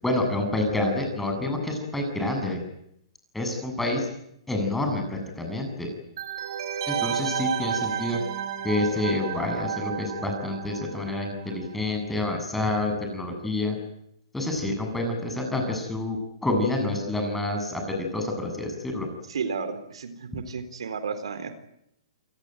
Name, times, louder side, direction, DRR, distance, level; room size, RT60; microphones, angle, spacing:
voice 1, 0.0-2.6 3.3-4.1 4.5-5.9 6.9-8.2 8.6-13.8 14.3-19.1, left 2 dB, 5° left, 3 dB, 7.7 m, -28 dB
sound 1, 6.2-11.6 11.9-12.0, right 9 dB, 60° right, 5.1 m, -32 dB
voice 2, 19.3-21.5, right 5 dB, 80° right, 11 dB, 3.9 m, -32 dB
28.5 x 18.5 x 9.3 m, 0.77 s
hypercardioid pair, 140°, 3 cm